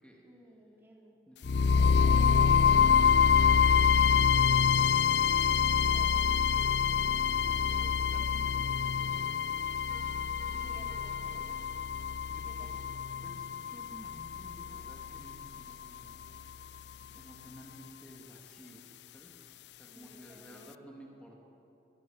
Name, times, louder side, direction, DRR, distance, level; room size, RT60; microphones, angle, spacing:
voice 1, 0.2-1.2 5.4-6.4 7.5-7.6 10.5-11.6 12.4-12.7 19.8-20.9, right 1 dB, 15° right, -2 dB, 3.5 m, -55 dB
voice 2, 1.3-3.0 3.5-5.2 5.9-9.4 12.3-12.9 13.2-16.3 17.1-19.4 19.7-21.4, equal, 5° left, -1 dB, 2.9 m, -54 dB
sound 1, 1.4-15.4, left 6 dB, 80° left, 0.5 m, -26 dB
Piano, 9.9-12.4, right 2 dB, 60° right, 3.2 m, -54 dB
22.5 x 22.5 x 7.6 m, 2.8 s
head